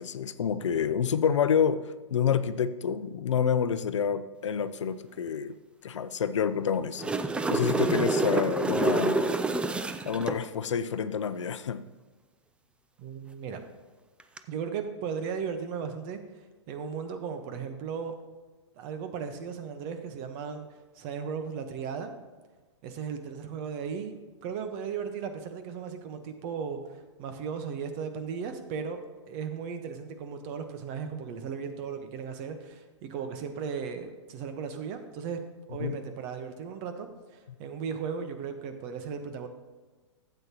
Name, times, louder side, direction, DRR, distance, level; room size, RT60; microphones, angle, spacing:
voice 1, 0.0-1.8 2.1-5.5 5.8-7.1 7.5-9.4 10.0-11.8 35.8-36.0, left 7 dB, 75° left, 13 dB, 0.5 m, -28 dB
sound 1, 6.8-10.4 14.2-14.4, right 3 dB, 5° right, 0.4 m, -27 dB
voice 2, 13.0-13.6 14.5-16.2 16.7-18.1 18.8-20.6 20.9-22.1 22.8-24.1 24.4-29.0 29.3-35.4 35.7-39.5, right 6 dB, 40° right, 7 dB, 1.1 m, -36 dB
12.0 x 8.0 x 3.0 m, 1.3 s
hypercardioid pair, 115°, 15 cm